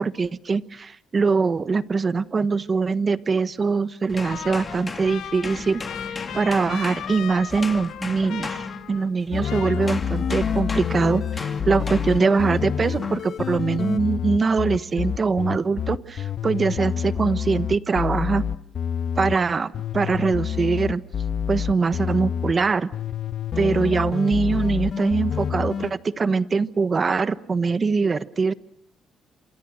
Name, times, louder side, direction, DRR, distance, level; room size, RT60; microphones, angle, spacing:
voice 1, 0.0-5.8 6.3-18.4 19.1-21.0 21.5-22.9 23.6-28.5, right 4 dB, 35° right, 14 dB, 1.2 m, -23 dB
sound 1, 4.1-9.4 9.9-12.4 13.0-13.3, left 3 dB, 30° left, 2.3 m, -36 dB
Trumpet, 4.2-9.2 9.4-10.5, left 10 dB, 85° left, 2.1 m, -37 dB
sound 2, 9.3-19.3 19.7-22.5 22.9-25.9, left 8 dB, 60° left, 1.2 m, -27 dB
27.5 x 26.5 x 6.3 m, 0.65 s
cardioid pair, 90°, 0 cm